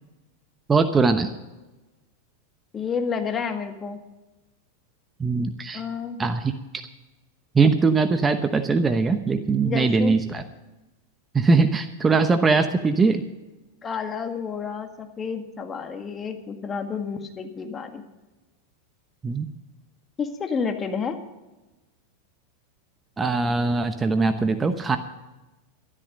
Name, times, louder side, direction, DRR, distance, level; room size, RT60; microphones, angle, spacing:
voice 1, 0.7-1.3 5.2-5.8 6.2-6.5 7.5-10.4 11.3-13.2 19.2-19.5 23.2-25.0, right 4 dB, 20° right, 9 dB, 1.0 m, -21 dB
voice 2, 2.7-4.0 5.7-6.2 9.6-10.2 13.8-18.0 20.2-21.2, left 6 dB, 25° left, 6 dB, 1.9 m, -30 dB
13.5 x 12.5 x 5.3 m, 1.1 s
hypercardioid pair, 100°, 0 cm